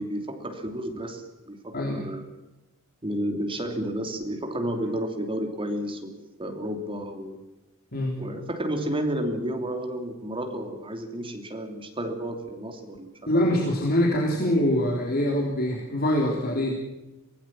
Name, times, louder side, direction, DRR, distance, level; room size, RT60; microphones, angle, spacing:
voice 1, 0.0-2.3 3.0-6.1 6.4-7.4 8.2-13.1, right 1 dB, 25° right, 4 dB, 3.0 m, -31 dB
voice 2, 1.7-2.1 7.9-8.2 13.3-16.7, left 1 dB, 45° left, -1 dB, 3.7 m, -24 dB
24.0 x 17.5 x 7.6 m, 1.0 s
head